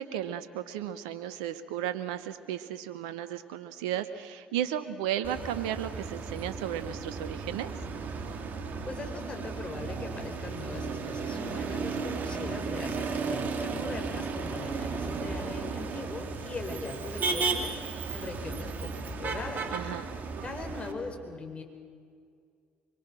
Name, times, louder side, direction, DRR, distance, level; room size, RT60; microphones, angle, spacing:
voice 1, 0.0-7.7 19.7-20.1, right 10 dB, 80° right, 12 dB, 0.9 m, -34 dB
Motor vehicle (road), 5.2-20.9, right 4 dB, 50° right, 2.4 m, -34 dB
voice 2, 8.8-19.7 20.4-21.6, left 3 dB, 30° left, 4 dB, 4.7 m, -40 dB
24.5 x 23.0 x 6.2 m, 2.1 s
hypercardioid pair, 55°, 4 cm